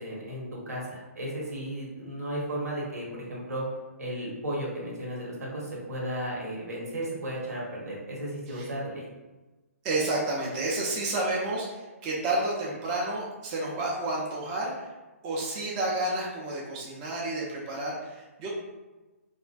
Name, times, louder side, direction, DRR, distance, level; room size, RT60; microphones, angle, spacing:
voice 1, 0.0-3.6 4.0-9.1, right 1 dB, 80° right, -4 dB, 0.9 m, -34 dB
voice 2, 9.8-14.9 15.2-18.5, right 2 dB, 25° right, -4 dB, 0.4 m, -30 dB
2.5 x 2.1 x 2.3 m, 1.1 s
hypercardioid pair, 135°, 8 cm